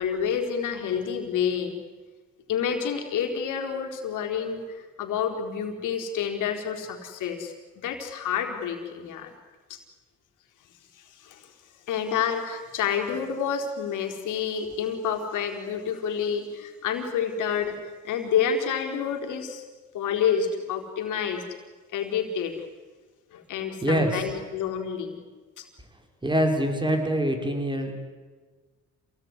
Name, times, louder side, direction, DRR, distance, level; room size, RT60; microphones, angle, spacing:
voice 1, 0.0-1.8 2.5-7.5 7.8-9.3 9.7-9.8 10.9-11.5 11.9-19.6 19.9-21.4 21.9-22.5 23.3-25.2 25.6-25.7, left 7 dB, 85° left, 3 dB, 4.4 m, -29 dB
voice 2, 23.8-24.4 26.2-27.9, equal, 15° right, 5 dB, 5.1 m, -24 dB
27.5 x 18.0 x 9.9 m, 1.3 s
cardioid pair, 90°, 30 cm